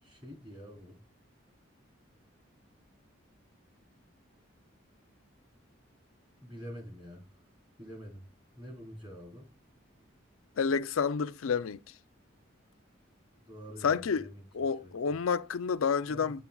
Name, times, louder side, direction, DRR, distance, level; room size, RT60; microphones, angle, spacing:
voice 1, 0.0-1.0 6.4-7.2 7.8-8.3 8.6-9.5 13.4-14.4 14.8-14.9 16.1-16.3, equal, 25° right, 3.6 m, -46 dB
voice 2, 10.6-11.8 13.8-14.3 14.5-16.4, left 6 dB, 85° left, 0.5 m, -29 dB
8.5 x 7.2 x 2.3 m
head